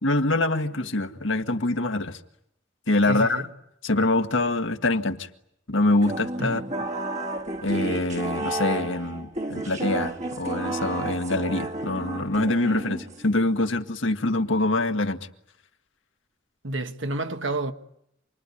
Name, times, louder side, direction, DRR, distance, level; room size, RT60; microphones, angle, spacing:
voice 1, 0.0-2.2 2.9-3.4 3.8-5.3 5.7-6.6 7.6-15.3, left 2 dB, 75° left, 1.7 m, -24 dB
voice 2, 3.1-3.5 6.4-6.7 16.6-17.7, right 2 dB, 75° right, 1.6 m, -30 dB
sound 1, 6.0-13.4, right 2 dB, 40° right, 1.6 m, -32 dB
28.0 x 21.5 x 9.8 m
head